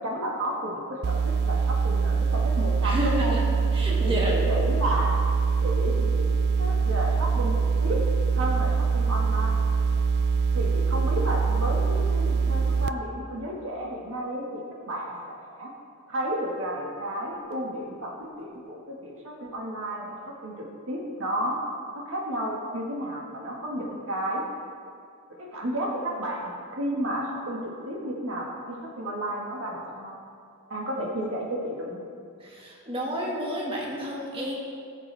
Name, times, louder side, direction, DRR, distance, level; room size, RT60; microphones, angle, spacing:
voice 1, 0.0-3.4 4.0-5.3 5.6-6.3 6.6-8.0 8.3-9.7 10.5-15.7 16.1-21.6 21.9-24.4 25.4-30.2 30.7-32.0, right 1 dB, 65° right, -2 dB, 1.6 m, -32 dB
sound 1, 1.0-12.9, right 5 dB, 50° right, 0.4 m, -24 dB
voice 2, 2.8-3.4 3.7-4.4 32.4-34.5, equal, 25° right, -3 dB, 1.7 m, -30 dB
18.0 x 7.8 x 3.3 m, 2.4 s
head